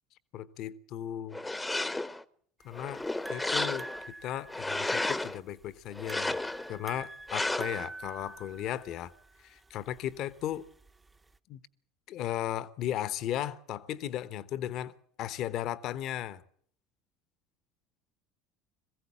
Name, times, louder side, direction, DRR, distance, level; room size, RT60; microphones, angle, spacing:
voice 1, 0.3-1.4 2.6-3.0 3.3-3.9 4.2-6.4 6.7-9.1 9.4-10.6 11.5-11.6 12.1-14.9 15.2-16.4, left 11 dB, 55° left, 1.0 m, -36 dB
sound 1, 1.3-2.2 2.7-4.1 4.5-5.4 6.0-6.7 7.3-7.9, left 2 dB, 10° left, 0.9 m, -33 dB
sound 2, 2.6-11.4, right 2 dB, 15° right, 0.8 m, -47 dB
22.0 x 15.5 x 8.7 m
figure-of-eight pair, 65°, 0 cm